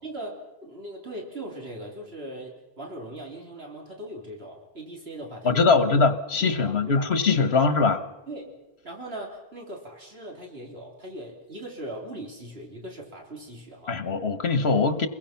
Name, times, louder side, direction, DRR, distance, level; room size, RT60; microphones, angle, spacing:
voice 1, 0.0-6.0 6.4-7.1 7.5-7.7 8.3-8.6 8.8-14.0, right 1 dB, 75° right, 0 dB, 3.6 m, -39 dB
voice 2, 5.4-8.0 13.9-15.1, left 4 dB, 85° left, 10 dB, 1.5 m, -22 dB
27.5 x 21.5 x 5.9 m, 1.0 s
omnidirectional pair, 1.1 m